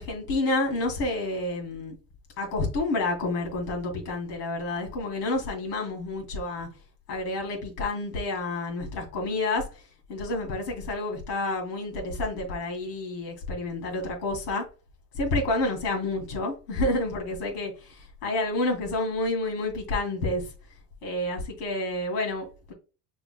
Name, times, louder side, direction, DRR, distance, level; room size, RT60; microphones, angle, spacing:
voice 1, 0.0-2.0 2.4-6.7 7.1-9.7 10.1-14.7 15.1-20.5 21.0-22.7, left 2 dB, 75° left, 2.5 m, -29 dB
5.9 x 3.7 x 2.2 m
supercardioid pair, 135°, 46 cm